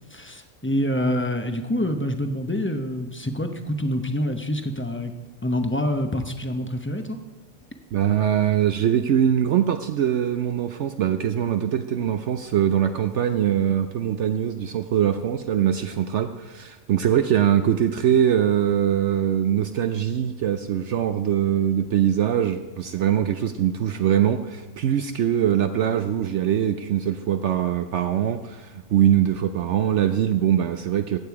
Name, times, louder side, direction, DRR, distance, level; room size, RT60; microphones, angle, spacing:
voice 1, 0.1-5.1 5.4-7.2, left 1 dB, 10° left, 6 dB, 0.7 m, -26 dB
voice 2, 7.9-31.2, right 10 dB, 65° right, 8 dB, 0.8 m, -22 dB
15.0 x 8.9 x 4.8 m, 1.2 s
omnidirectional pair, 1.4 m